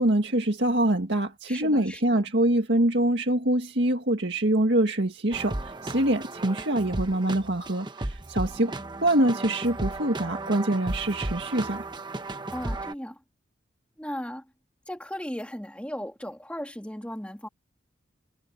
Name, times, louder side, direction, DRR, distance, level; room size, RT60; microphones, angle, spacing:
voice 1, 0.0-8.7 9.0-11.9, right 1 dB, 65° right, 2.0 m, -24 dB
voice 2, 1.5-2.2 12.5-13.2 14.0-14.5 14.9-17.5, equal, 5° left, 2.6 m, -36 dB
sound 1, 5.3-12.9, right 2 dB, 25° right, 1.0 m, -35 dB
head